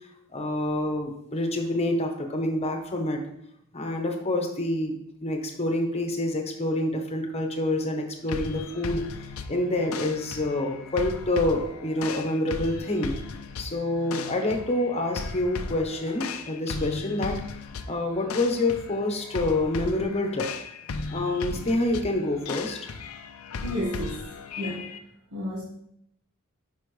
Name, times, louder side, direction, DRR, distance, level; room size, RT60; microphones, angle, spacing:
voice 1, 0.3-3.2 3.7-5.0 5.2-9.0 9.5-13.1 13.6-17.4 17.9-20.5 21.1-22.8, left 1 dB, 30° left, 3 dB, 1.0 m, -27 dB
sound 1, 8.3-25.0, left 4 dB, 75° left, 0.5 m, -37 dB
voice 2, 23.6-24.3 24.6-24.9 25.3-25.6, left 1 dB, 90° right, -5 dB, 1.4 m, -31 dB
8.2 x 5.7 x 3.2 m, 0.75 s
head